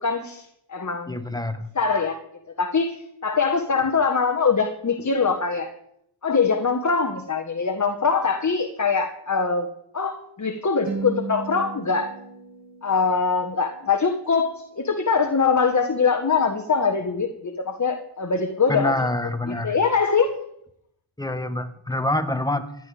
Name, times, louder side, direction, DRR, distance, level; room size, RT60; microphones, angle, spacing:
voice 1, 0.0-1.2 1.7-2.2 2.6-5.7 6.2-12.1 12.8-18.9 19.5-20.3, left 5 dB, 35° left, 5 dB, 1.5 m, -23 dB
voice 2, 1.1-1.6 18.7-19.8 21.2-22.7, left 1 dB, 10° left, 8 dB, 1.6 m, -26 dB
sound 1, 10.9-15.2, right 4 dB, 35° right, 2.2 m, -37 dB
16.0 x 11.0 x 5.1 m, 0.75 s
cardioid pair, 55°, 49 cm